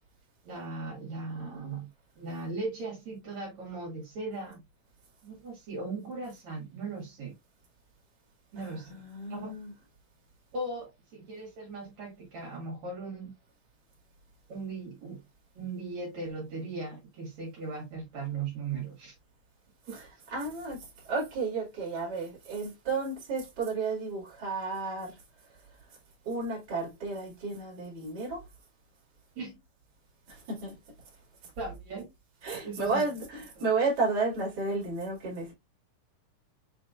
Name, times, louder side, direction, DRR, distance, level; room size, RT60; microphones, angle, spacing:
voice 1, 0.4-1.9 2.2-4.6 5.2-7.3 8.5-9.0 9.3-9.5 10.5-13.3 14.5-15.2 15.5-19.1 29.4-29.6 31.6-32.1 32.6-33.0 33.6-33.7, right 3 dB, 60° right, 3.0 m, -38 dB
voice 2, 8.6-9.7 19.9-25.2 26.2-28.4 30.3-30.7 32.4-35.5, right 3 dB, 35° right, 2.7 m, -32 dB
5.7 x 3.6 x 2.4 m
omnidirectional pair, 3.8 m